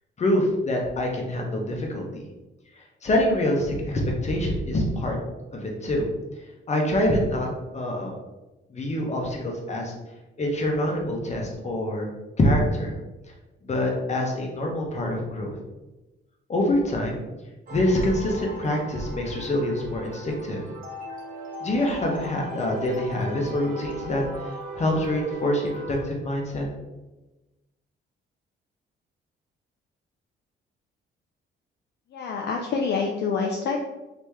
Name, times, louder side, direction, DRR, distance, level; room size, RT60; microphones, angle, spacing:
voice 1, 0.2-2.2 3.0-5.2 5.5-6.1 6.7-8.2 8.7-9.9 10.4-12.1 12.4-12.9 13.6-15.6 16.5-17.2 17.7-20.6 21.6-26.6, left 1 dB, 35° left, 0 dB, 1.0 m, -25 dB
sound 1, 17.7-26.0, right 2 dB, 45° right, 0.9 m, -38 dB
voice 2, 32.1-33.8, left 5 dB, 60° left, 1 dB, 0.5 m, -26 dB
3.0 x 2.9 x 3.5 m, 1.1 s
cardioid pair, 90°, 20 cm